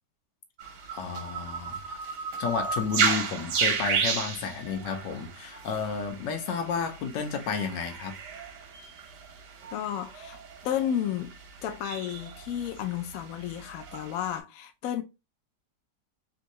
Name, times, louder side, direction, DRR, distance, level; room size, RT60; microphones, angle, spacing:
sound 1, 0.6-14.4, right 6 dB, 75° right, 1.3 m, -33 dB
voice 1, 0.9-2.0 2.4-8.2, left 6 dB, 85° left, 1.4 m, -32 dB
voice 2, 9.7-11.3 11.6-15.0, left 10 dB, 70° left, 0.8 m, -32 dB
3.5 x 2.7 x 2.9 m
omnidirectional pair, 1.9 m